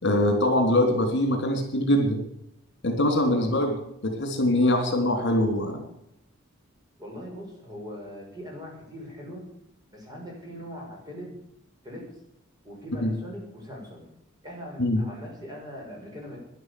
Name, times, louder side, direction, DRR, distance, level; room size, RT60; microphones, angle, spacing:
voice 1, 0.0-2.2 2.8-3.7 4.0-5.8 13.0-13.1 14.8-15.0, left 1 dB, 60° left, 4 dB, 3.3 m, -23 dB
voice 2, 7.0-9.4 9.9-11.3 11.8-12.1 12.6-14.1 14.4-16.4, equal, 20° right, -2 dB, 6.4 m, -41 dB
12.5 x 11.0 x 8.3 m, 0.79 s
head